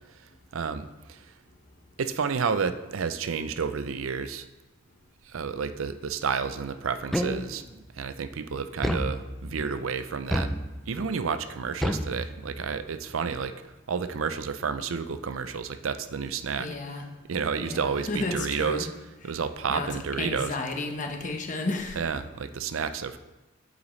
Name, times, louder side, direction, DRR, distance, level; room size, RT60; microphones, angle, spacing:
voice 1, 0.5-1.3 2.0-4.5 5.3-10.5 10.9-13.5 13.9-16.7 17.3-18.9 19.2-20.5 22.0-23.2, right 6 dB, 90° right, 11 dB, 0.5 m, -30 dB
sound 1, 7.1-7.8 8.8-9.7 10.3-11.1 11.8-12.8, equal, ahead, 0.4 m, -30 dB
voice 2, 16.6-17.0 17.6-18.8 19.2-19.3 19.7-22.0, left 2 dB, 40° left, 3 dB, 1.0 m, -32 dB
8.7 x 8.0 x 3.2 m, 1.1 s
head